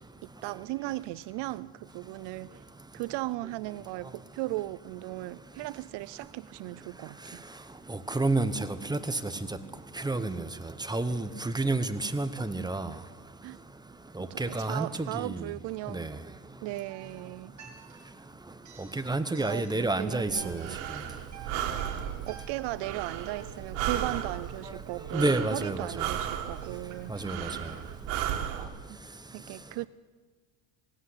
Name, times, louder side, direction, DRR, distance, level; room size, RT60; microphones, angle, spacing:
voice 1, 0.0-2.6 2.9-7.4 13.4-13.6 14.2-16.1 16.6-17.5 19.4-20.8 21.5-21.9 22.3-27.1 29.3-29.9, right 18 dB, 60° right, 18 dB, 0.6 m, -37 dB
voice 2, 7.9-9.2 10.0-10.5 10.9-12.9 14.2-15.4 15.9-16.1 18.8-20.7 25.1-26.1 27.1-27.5, right 2 dB, 10° right, 11 dB, 0.9 m, -29 dB
sound 1, 16.9-18.2 18.6-20.0 20.3-27.7, right 6 dB, 40° right, 4.7 m, -49 dB
Breathing, 20.3-28.6, right 10 dB, 90° right, 2.5 m, -35 dB
18.5 x 16.5 x 9.7 m, 1.4 s
cardioid pair, 135°, 46 cm